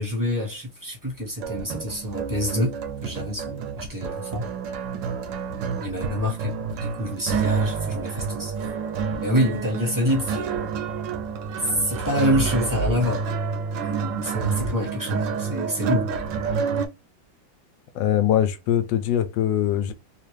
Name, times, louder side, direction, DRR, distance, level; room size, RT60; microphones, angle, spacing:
voice 1, 0.0-4.5 5.8-8.5 9.2-10.7 11.6-13.3 13.8-16.1, equal, 15° right, 0.6 m, -27 dB
sound 1, 1.4-16.9, right 5 dB, 75° right, 1.3 m, -29 dB
voice 2, 17.9-19.9, left 10 dB, 75° left, 1.2 m, -22 dB
3.7 x 2.4 x 3.1 m
omnidirectional pair, 2.1 m